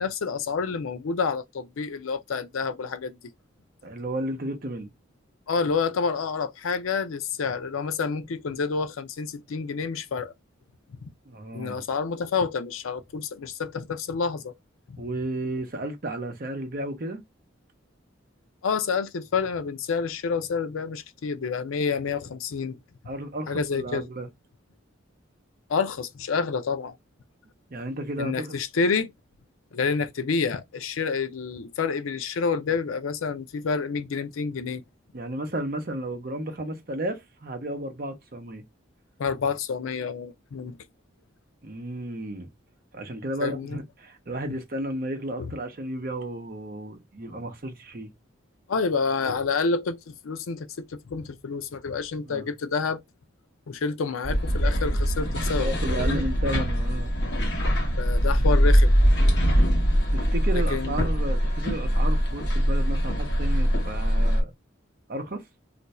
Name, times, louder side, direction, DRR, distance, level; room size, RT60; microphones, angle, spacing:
voice 1, 0.0-3.2 5.5-10.3 11.0-11.1 11.5-14.5 14.9-15.0 18.6-22.8 23.5-24.1 25.7-27.0 28.2-29.1 29.7-34.8 39.2-40.8 43.4-43.8 45.4-45.5 48.7-53.0 53.7-56.2 58.0-59.0 60.7-61.0, left 5 dB, 90° left, 0.5 m, -28 dB
voice 2, 3.8-4.9 11.3-11.8 15.0-17.2 23.1-24.3 27.7-28.5 35.1-38.6 41.6-42.5 42.9-48.1 52.3-52.5 55.5-57.1 60.1-64.5 65.1-65.4, right 1 dB, 45° right, 0.7 m, -33 dB
sound 1, 54.2-64.4, equal, 55° left, 1.0 m, -22 dB
2.5 x 2.3 x 4.0 m
head